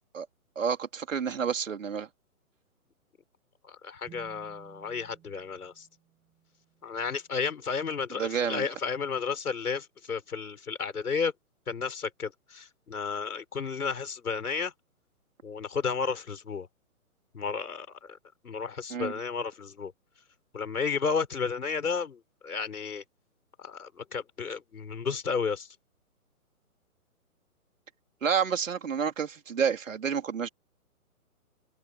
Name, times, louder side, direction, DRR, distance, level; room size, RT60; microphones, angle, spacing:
voice 1, 0.6-2.1 8.2-8.7 18.9-19.1 28.2-30.5, right 7 dB, 60° right, 3.5 m, -29 dB
voice 2, 3.6-5.9 6.8-11.3 11.7-14.7 15.4-16.7 17.3-18.2 18.4-19.9 20.5-23.0 23.6-25.7, left 5 dB, 80° left, 6.0 m, -32 dB
sound 1, 4.1-7.6, right 12 dB, 10° right, 6.5 m, -56 dB
hypercardioid pair, 180°, 44 cm